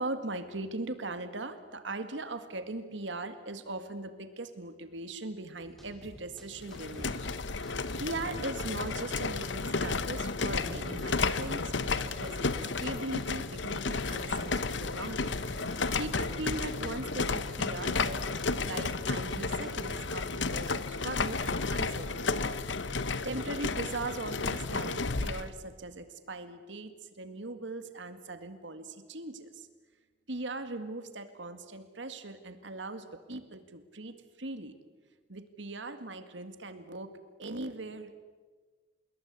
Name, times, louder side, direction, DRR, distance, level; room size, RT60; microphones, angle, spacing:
voice 1, 0.0-7.1 7.6-18.2 18.6-22.3 23.2-26.9 27.2-29.7 30.3-34.8 35.3-37.1 37.4-38.1, right 2 dB, 75° right, 9 dB, 2.0 m, -40 dB
sound 1, 5.6-20.1, equal, ahead, 4.2 m, -50 dB
sound 2, 6.6-25.5, left 4 dB, 75° left, 1.1 m, -32 dB
27.0 x 21.5 x 8.3 m, 1.4 s
head